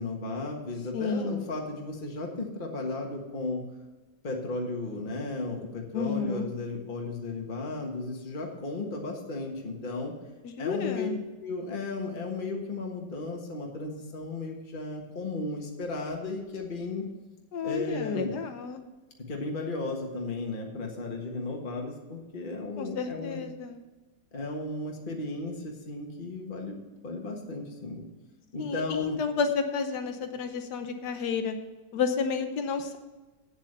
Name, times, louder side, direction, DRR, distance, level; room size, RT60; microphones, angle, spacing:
voice 1, 0.0-3.6 4.2-10.1 10.6-11.1 11.4-17.0 17.6-18.4 19.2-23.4 24.3-28.0 28.5-29.2, left 2 dB, 30° left, 0 dB, 1.5 m, -35 dB
voice 2, 0.9-1.5 5.9-6.5 10.4-11.2 17.5-18.8 22.8-23.8 28.6-31.6 31.9-33.0, left 5 dB, 70° left, 7 dB, 1.5 m, -31 dB
8.9 x 7.4 x 6.7 m, 1.2 s
omnidirectional pair, 1.9 m